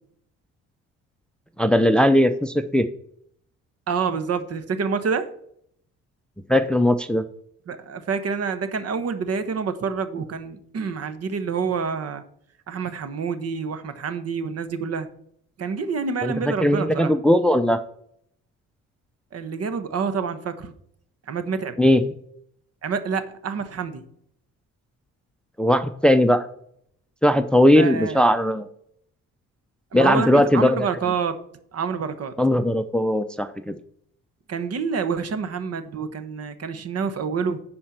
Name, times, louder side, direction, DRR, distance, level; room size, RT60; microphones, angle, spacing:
voice 1, 1.6-2.9 6.5-7.2 16.2-16.3 16.6-17.8 21.8-22.0 25.6-26.4 27.2-28.6 29.9-30.8 32.4-33.8, left 1 dB, 5° left, 10 dB, 0.6 m, -18 dB
voice 2, 3.9-5.3 7.7-12.2 12.7-15.1 15.6-17.1 19.3-20.7 21.3-21.8 22.8-24.0 27.8-28.2 29.9-31.4 31.7-32.4 34.5-37.6, right 5 dB, 55° right, 11 dB, 1.2 m, -27 dB
10.0 x 4.4 x 6.5 m, 0.67 s
cardioid pair, 90°, 30 cm